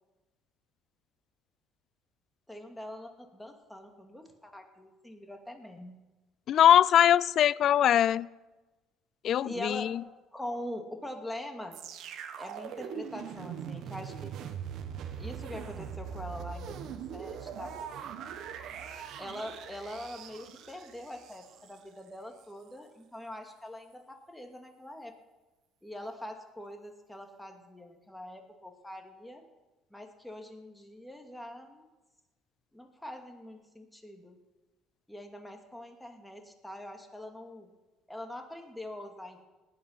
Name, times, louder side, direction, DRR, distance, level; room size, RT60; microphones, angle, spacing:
voice 1, 2.5-5.9 9.4-9.9 10.3-11.8 12.4-14.3 15.2-17.8 19.2-25.2 25.8-29.4 29.9-31.9 32.7-34.4 35.1-37.7 38.1-39.4, left 1 dB, 5° left, 4 dB, 2.6 m, -43 dB
voice 2, 6.5-8.3 9.2-10.0, left 10 dB, 60° left, 22 dB, 0.4 m, -22 dB
sound 1, 11.7-21.8 22.4-22.5, right 8 dB, 65° right, 1.4 m, -41 dB
18.5 x 9.6 x 5.7 m, 1.1 s
hypercardioid pair, 65°, 0 cm